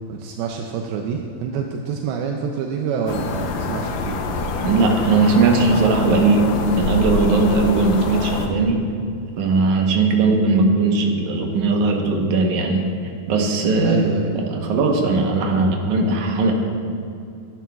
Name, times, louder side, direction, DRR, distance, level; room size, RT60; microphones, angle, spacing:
voice 1, 0.0-4.2 13.8-14.3, right 6 dB, 85° right, 2 dB, 2.5 m, -27 dB
sound 1, 3.1-8.5, left 3 dB, 75° left, 2.2 m, -25 dB
voice 2, 4.6-8.8 9.4-12.9 13.3-16.5, right 3 dB, 65° right, 1 dB, 2.1 m, -18 dB
17.0 x 10.0 x 2.3 m, 2.4 s
omnidirectional pair, 4.4 m